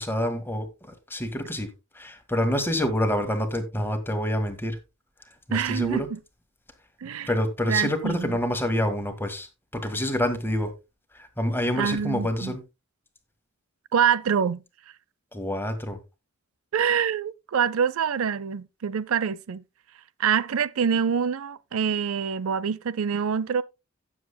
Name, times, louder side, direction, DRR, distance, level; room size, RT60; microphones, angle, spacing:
voice 1, 0.0-1.7 1.9-4.8 5.5-6.1 7.3-10.7 11.1-12.6 15.3-16.0, left 1 dB, 10° left, 1.6 m, -27 dB
voice 2, 5.5-6.2 7.0-7.3 7.7-8.4 11.8-12.5 13.9-14.6 16.7-19.6 20.2-23.6, right 7 dB, 85° right, 0.5 m, -25 dB
16.5 x 7.3 x 2.2 m
head